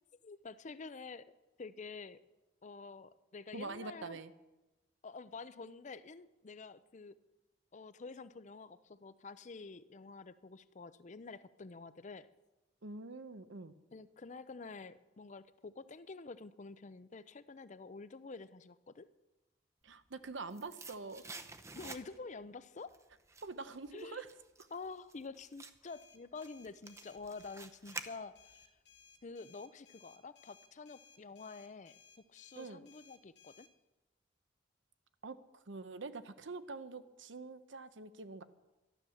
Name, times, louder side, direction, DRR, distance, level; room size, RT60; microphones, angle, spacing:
voice 1, 0.2-1.3 1.6-2.2 2.6-4.2 5.0-7.2 7.7-12.3 13.9-19.1 21.7-22.9 23.9-24.2 24.7-28.7 29.2-32.0 32.3-33.7, left 4 dB, 40° left, 15 dB, 0.5 m, -48 dB
voice 2, 3.5-4.3 12.8-13.7 19.8-21.2 23.4-24.3 32.6-32.8 35.2-35.4 35.7-38.4, right 3 dB, 75° right, 12 dB, 0.9 m, -45 dB
sound 1, 20.0-22.4 22.8-28.6 29.0-29.1, right 3 dB, 15° right, 0.7 m, -50 dB
sound 2, 25.9-33.7, left 7 dB, 65° left, 1.7 m, -62 dB
12.5 x 12.0 x 7.1 m, 1.1 s
head